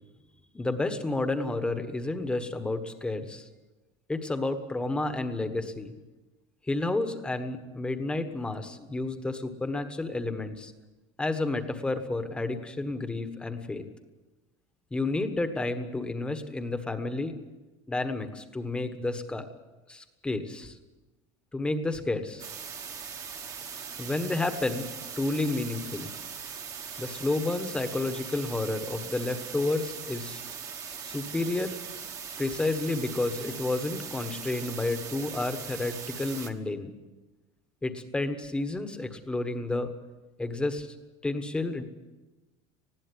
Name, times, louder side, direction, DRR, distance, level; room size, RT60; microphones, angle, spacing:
voice 1, 0.5-3.5 4.1-5.9 6.7-10.7 11.2-13.8 14.9-17.3 17.9-19.5 19.9-20.8 21.5-22.4 24.0-24.9 25.2-26.1 27.0-30.4 31.0-31.8 32.4-36.9 37.8-39.9 40.4-40.9 41.2-41.8, left 2 dB, 5° left, 8 dB, 1.3 m, -30 dB
sound 1, 22.4-36.5, right 7 dB, 25° right, 1.3 m, -40 dB
20.0 x 15.5 x 9.8 m, 1.2 s
cardioid pair, 170°, 13 cm